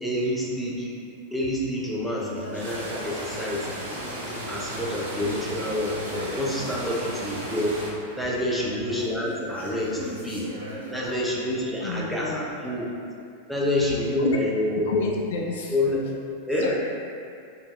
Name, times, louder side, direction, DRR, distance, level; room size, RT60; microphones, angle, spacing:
voice 1, 0.0-1.0 1.3-3.7 4.5-6.0 6.3-7.8 8.2-10.5 10.9-12.9 13.5-14.9 15.7-16.1 16.5-16.7, left 1 dB, 5° left, -6 dB, 0.6 m, -27 dB
sound 1, 2.1-11.3, equal, 90° right, 0.9 m, -40 dB
sound 2, 2.6-7.9, right 1 dB, 60° right, 0.7 m, -35 dB
voice 2, 8.4-8.8 11.8-12.5 13.5-14.4 14.9-15.8 16.6-16.8, left 4 dB, 55° left, -1 dB, 0.3 m, -32 dB
3.2 x 2.7 x 3.3 m, 2.4 s
figure-of-eight pair, 90°, 0 cm